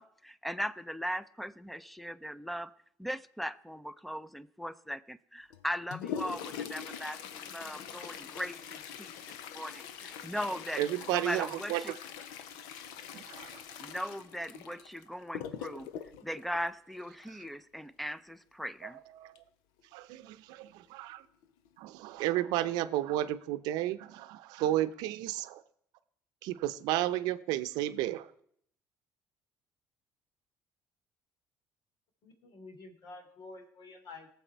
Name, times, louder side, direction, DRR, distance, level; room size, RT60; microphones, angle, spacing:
voice 1, 0.0-2.7 3.0-9.1 9.5-10.8 11.1-12.0 13.8-15.9 16.2-19.0, equal, ahead, 15 dB, 0.6 m, -39 dB
Toilet flush, 5.5-17.5 19.4-19.5 19.8-19.9 20.7-20.8 21.4-21.7 22.1-22.3, left 8 dB, 90° left, 0.8 m, -43 dB
voice 2, 10.8-12.0 13.1-13.6 18.8-18.9 19.2-19.4 19.9-21.2 21.8-25.6 26.4-28.3, right 14 dB, 85° right, 12 dB, 0.6 m, -32 dB
voice 3, 32.2-34.3, left 3 dB, 70° left, 5 dB, 2.8 m, -49 dB
19.0 x 7.2 x 4.6 m, 0.68 s
cardioid pair, 100°, 7 cm